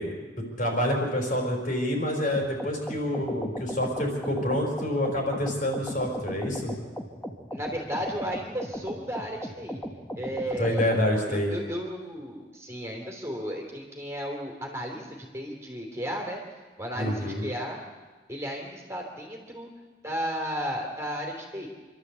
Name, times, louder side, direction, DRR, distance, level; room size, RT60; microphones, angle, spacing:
voice 1, 0.0-6.7 10.6-11.5 16.9-17.4, left 1 dB, 50° left, 2 dB, 5.0 m, -27 dB
sound 1, 2.3-11.1, equal, 10° left, 1.5 m, -37 dB
voice 2, 7.5-9.8 10.1-11.0 11.3-16.4 16.8-17.8 18.3-19.7 20.0-21.7, equal, 15° right, 0 dB, 3.1 m, -34 dB
27.0 x 12.5 x 8.3 m, 1.4 s
head